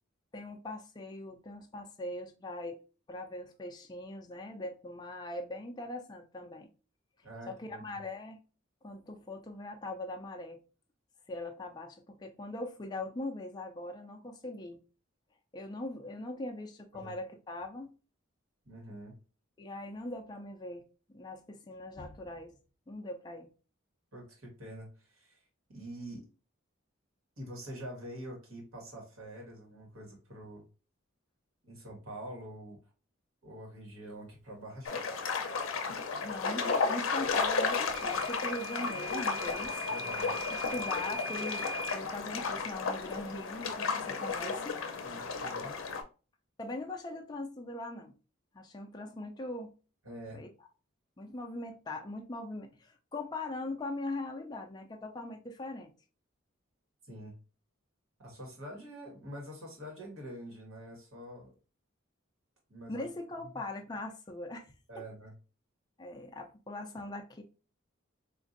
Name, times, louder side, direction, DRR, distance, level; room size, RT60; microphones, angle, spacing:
voice 1, 0.3-2.8 3.1-6.7 7.5-8.4 8.8-10.6 11.3-14.8 15.5-17.9 19.6-20.9 21.1-22.5 22.9-23.5 35.9-39.8 40.5-44.8 46.6-48.1 48.5-49.7 50.3-50.5 51.2-55.9 62.9-65.0 66.0-67.4, left 2 dB, 20° left, 0.4 m, -41 dB
voice 2, 7.2-8.0 16.9-17.1 18.6-19.1 24.1-25.4 25.7-26.2 27.4-30.6 31.6-32.8 33.4-35.5 39.9-40.3 45.0-45.7 50.0-50.4 57.1-57.3 58.2-61.5 62.7-63.1 63.5-63.6 64.9-65.3, right 1 dB, 90° right, 1.4 m, -46 dB
sound 1, 34.9-46.0, left 4 dB, 80° left, 0.6 m, -33 dB
Microwave oven / Alarm, 37.9-42.0, equal, 60° right, 0.7 m, -40 dB
4.0 x 2.5 x 2.5 m
head